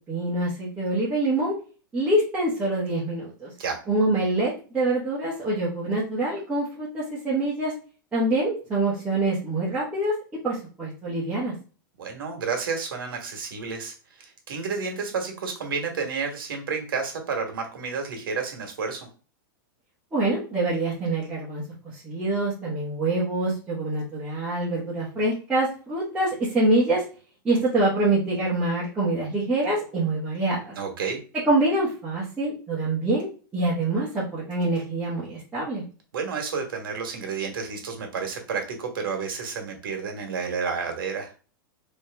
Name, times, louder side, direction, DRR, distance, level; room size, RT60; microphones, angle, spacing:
voice 1, 0.1-1.5 1.9-3.5 3.9-7.7 8.1-10.1 10.4-11.5 20.1-21.6 21.9-27.0 27.4-30.7 31.4-35.8, right 2 dB, 10° right, -9 dB, 1.3 m, -25 dB
voice 2, 12.0-19.1 30.8-31.2 36.1-41.3, right 5 dB, 90° right, 3 dB, 1.4 m, -31 dB
3.6 x 3.1 x 3.4 m, 0.36 s
supercardioid pair, 150°, 11 cm